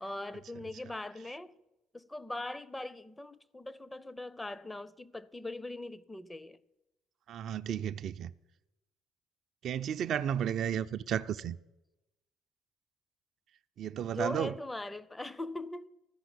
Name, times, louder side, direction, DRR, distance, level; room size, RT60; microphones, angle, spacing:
voice 1, 0.0-1.6 1.9-6.6 14.0-15.9, left 2 dB, 15° left, 0.5 m, -41 dB
voice 2, 7.3-8.3 9.6-11.6 13.8-14.5, right 9 dB, 55° right, 0.3 m, -33 dB
13.5 x 5.7 x 8.2 m
hypercardioid pair, 55°, 0 cm